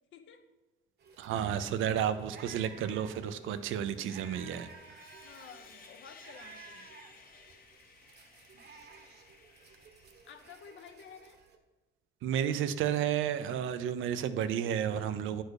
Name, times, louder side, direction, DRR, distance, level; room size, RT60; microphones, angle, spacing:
voice 1, 0.1-0.4 5.2-6.9 10.2-11.4, left 7 dB, 75° left, 7 dB, 0.8 m, -52 dB
sound 1, 1.0-11.6, right 5 dB, 55° right, 1.0 m, -55 dB
voice 2, 1.2-5.0 12.2-15.4, right 9 dB, 85° right, 12 dB, 0.5 m, -32 dB
Sawing, 3.5-10.9, left 5 dB, 50° left, 1.0 m, -57 dB
9.2 x 4.4 x 4.8 m, 1.1 s
cardioid pair, 90°, 20 cm